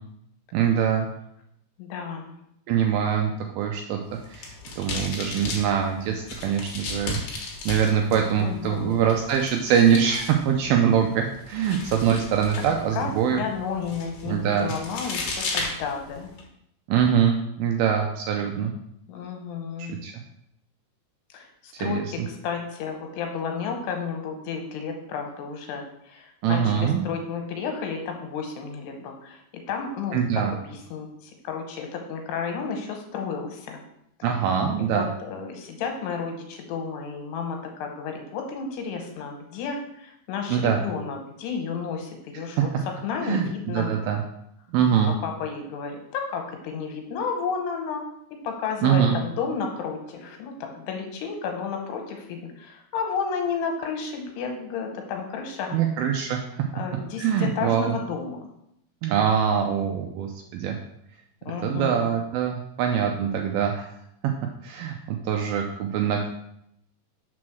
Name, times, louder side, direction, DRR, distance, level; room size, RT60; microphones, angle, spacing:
voice 1, 0.5-1.1 2.7-3.3 3.6-4.0 4.3-4.5 4.8-7.2 7.7-13.5 14.3-14.7 16.9-18.7 19.8-20.1 21.8-22.0 26.4-27.0 30.1-30.5 34.2-35.1 40.5-40.8 43.2-44.2 44.7-45.1 48.8-49.2 55.7-56.7 57.2-58.0 59.0-60.8 61.6-63.9 64.6-66.3, right 8 dB, 80° right, 3 dB, 2.2 m, -23 dB
voice 2, 1.8-2.3 8.4-9.0 13.0-16.3 19.1-20.0 21.3-29.4 29.7-33.8 34.9-42.7 43.0-43.9 45.0-48.0 48.4-55.8 56.7-58.5 61.5-62.1, left 6 dB, 80° left, 3 dB, 3.1 m, -32 dB
sound 1, 4.1-16.4, left 3 dB, 65° left, 2.2 m, -36 dB
6.1 x 4.2 x 6.1 m, 0.76 s
omnidirectional pair, 4.8 m